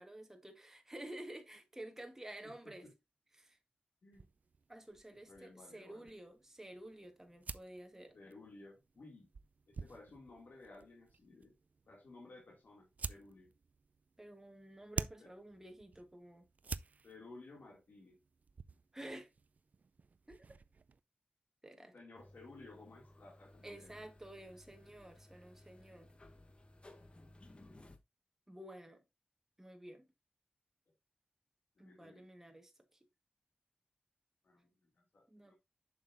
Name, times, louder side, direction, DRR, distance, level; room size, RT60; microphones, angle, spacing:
voice 1, 0.0-2.9 3.3-3.6 4.7-8.2 14.2-16.5 18.9-19.3 20.3-20.4 21.6-21.9 23.6-26.1 28.5-29.0 29.6-30.1 31.8-33.0 35.3-35.5, right 1 dB, 15° right, 1.4 m, -51 dB
sound 1, 4.1-21.0, right 4 dB, 55° right, 0.3 m, -50 dB
voice 2, 5.3-6.2 8.1-9.3 9.7-11.6 11.9-13.5 15.2-15.3 17.0-18.2 21.9-24.1 24.8-24.9 27.5-27.8 31.8-32.3 34.4-35.5, left 2 dB, 75° left, 2.2 m, -57 dB
sound 2, 22.1-28.0, left 1 dB, 35° left, 1.0 m, -59 dB
7.2 x 6.2 x 2.5 m
wide cardioid pair, 120°, 3 cm